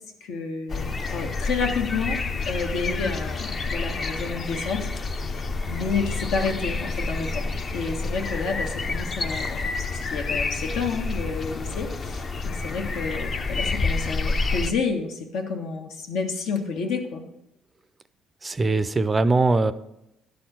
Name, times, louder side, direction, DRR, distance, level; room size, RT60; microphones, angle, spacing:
voice 1, 0.2-2.2 2.5-4.9 5.2-5.3 5.7-17.2, left 4 dB, 80° left, 3 dB, 1.6 m, -30 dB
sound 1, 0.7-14.7, left 3 dB, 30° left, 0.6 m, -29 dB
voice 2, 18.4-19.7, right 3 dB, 20° right, 13 dB, 0.4 m, -21 dB
11.5 x 4.3 x 7.6 m, 0.85 s
cardioid pair, 140°, 0 cm